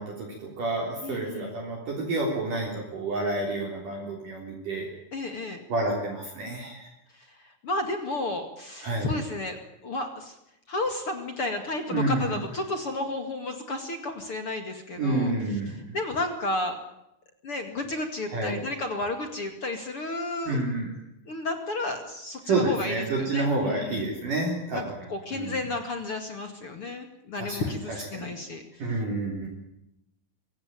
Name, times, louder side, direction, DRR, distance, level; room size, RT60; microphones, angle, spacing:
voice 1, 0.0-4.9 5.7-6.9 8.8-9.1 11.9-12.4 15.0-15.9 18.3-18.5 20.5-20.9 22.4-24.9 25.3-25.6 27.4-27.6 27.9-28.3 28.8-29.5, right 2 dB, 50° right, -1 dB, 4.9 m, -29 dB
voice 2, 1.0-1.6 5.1-5.6 7.1-9.6 9.8-10.4 10.7-15.3 15.7-16.8 17.4-20.6 21.3-24.1 24.7-24.8 25.1-29.0, left 2 dB, 40° left, 6 dB, 2.2 m, -32 dB
24.5 x 17.5 x 9.0 m, 0.82 s
omnidirectional pair, 5.2 m